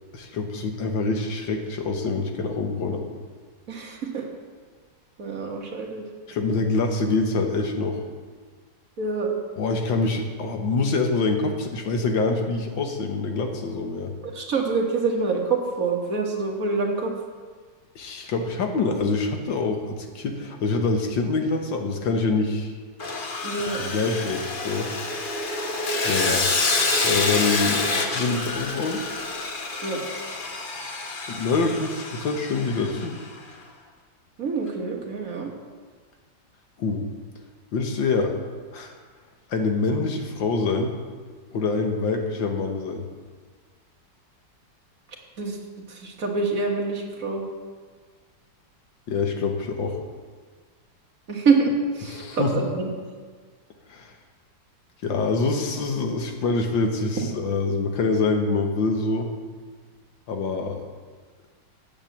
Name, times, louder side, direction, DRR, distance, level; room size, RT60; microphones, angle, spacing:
voice 1, 0.1-3.0 6.3-8.0 9.6-14.1 18.0-22.7 23.9-24.9 26.0-26.4 27.0-29.0 31.3-33.2 36.8-37.0 37.7-38.4 38.7-38.9 39.5-40.9 41.5-43.1 49.1-50.0 52.1-52.5 53.9-54.1 55.0-59.3 60.3-60.8, left 3 dB, 85° left, 4 dB, 1.9 m, -25 dB
voice 2, 3.7-4.3 5.2-6.1 9.0-9.4 14.3-17.1 23.4-23.9 29.8-30.0 34.4-35.5 45.4-45.6 45.9-47.4 51.3-52.9, right 4 dB, 50° right, 0 dB, 1.7 m, -26 dB
Sawing, 23.0-33.2, left 3 dB, 40° left, 0.8 m, -27 dB
8.9 x 8.2 x 7.1 m, 1.5 s
omnidirectional pair, 2.0 m